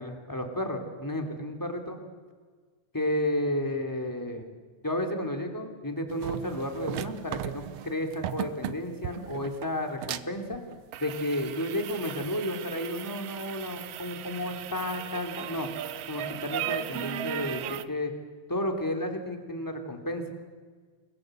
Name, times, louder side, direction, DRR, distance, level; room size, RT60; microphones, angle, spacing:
voice 1, 0.0-2.0 2.9-4.5 4.8-10.6 11.0-15.7 16.1-18.1 18.5-20.3, left 1 dB, 5° left, 3 dB, 2.7 m, -32 dB
sound 1, 6.1-17.8, right 11 dB, 85° right, 1.3 m, -37 dB
29.0 x 21.5 x 8.1 m, 1.5 s
omnidirectional pair, 4.0 m